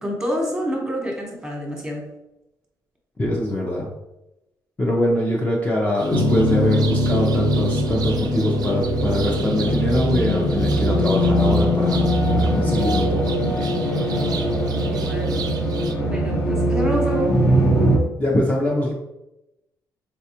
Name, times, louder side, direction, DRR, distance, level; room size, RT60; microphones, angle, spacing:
voice 1, 0.0-2.1 14.9-15.4 16.1-17.4, equal, 10° right, 0 dB, 1.1 m, -27 dB
voice 2, 3.2-3.9 4.8-13.7 18.2-18.9, left 1 dB, 20° left, -3 dB, 0.6 m, -23 dB
sound 1, 6.0-15.9, right 6 dB, 55° right, 0.4 m, -37 dB
sound 2, 6.1-18.0, equal, 50° left, 1.0 m, -21 dB
4.2 x 2.3 x 2.8 m, 0.92 s
cardioid pair, 85°, 8 cm